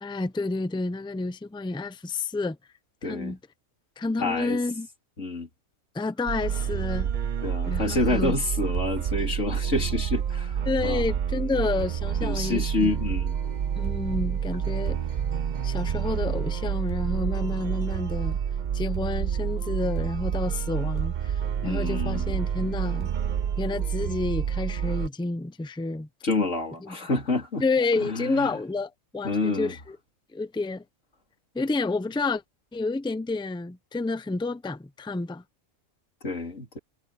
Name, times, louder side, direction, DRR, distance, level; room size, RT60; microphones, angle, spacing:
voice 1, 0.0-2.6 3.0-3.4 4.0-4.9 5.9-7.1 7.7-8.3 10.6-12.9 13.8-15.0 15.6-18.4 18.7-23.1 23.6-26.1 26.8-27.0 27.6-30.0 30.3-30.8 31.5-32.4 32.7-35.4, left 3 dB, 5° left, 0.4 m, -29 dB
voice 2, 3.0-3.3 4.2-4.6 5.2-5.5 7.4-11.0 12.2-13.3 21.6-22.3 26.2-27.7 28.0-28.5 29.2-29.7 36.2-36.8, left 2 dB, 60° left, 3.9 m, -28 dB
sound 1, 6.3-25.1, right 8 dB, 55° right, 0.5 m, -28 dB
omnidirectional pair, 1.4 m